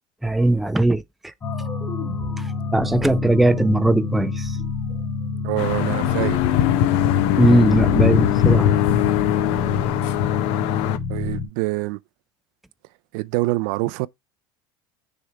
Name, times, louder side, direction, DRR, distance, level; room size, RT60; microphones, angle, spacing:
voice 1, 0.2-1.0 2.7-4.6 7.4-8.7, right 1 dB, ahead, 0.3 m, -19 dB
sound 1, 1.4-11.5, left 5 dB, 25° left, 2.6 m, -28 dB
voice 2, 5.4-6.4 11.1-12.0 13.1-14.1, right 21 dB, 70° right, 0.5 m, -25 dB
sound 2, 5.6-11.0, left 11 dB, 60° left, 0.7 m, -20 dB
6.5 x 3.5 x 4.5 m
supercardioid pair, 140°, 11 cm